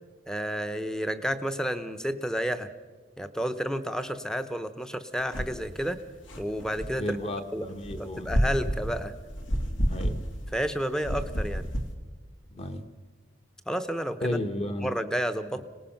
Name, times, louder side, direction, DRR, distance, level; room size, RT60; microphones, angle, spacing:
voice 1, 0.3-2.7 3.2-6.0 6.4-7.2 7.5-7.7 8.0-9.1 10.5-11.7 13.7-14.4 14.8-15.6, equal, 5° left, 9 dB, 0.8 m, -31 dB
sound 1, 5.3-5.6 6.0-7.0 7.8-10.7 11.0-11.9, equal, 75° left, 2.2 m, -29 dB
voice 2, 7.0-8.3 9.9-10.2 12.5-12.9 14.2-14.9, left 1 dB, 30° left, 7 dB, 1.3 m, -33 dB
26.0 x 19.0 x 5.9 m, 1.4 s
head